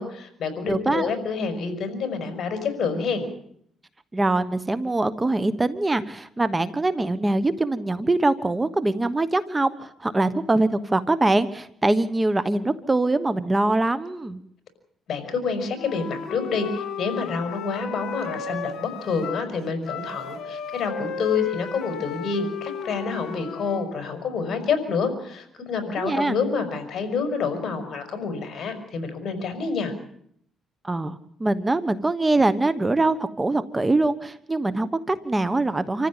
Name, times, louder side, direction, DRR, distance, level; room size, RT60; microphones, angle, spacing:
voice 1, 0.0-3.2 15.1-29.9, left 5 dB, 55° left, 7 dB, 5.5 m, -28 dB
voice 2, 0.7-1.1 4.1-14.4 26.0-26.4 30.8-36.1, right 2 dB, 20° right, 14 dB, 1.2 m, -23 dB
Wind instrument woodwind instrument, 15.8-19.5 19.8-23.9, left 5 dB, 75° left, 3.0 m, -34 dB
27.0 x 14.5 x 9.0 m, 0.69 s
cardioid pair, 90°, 0 cm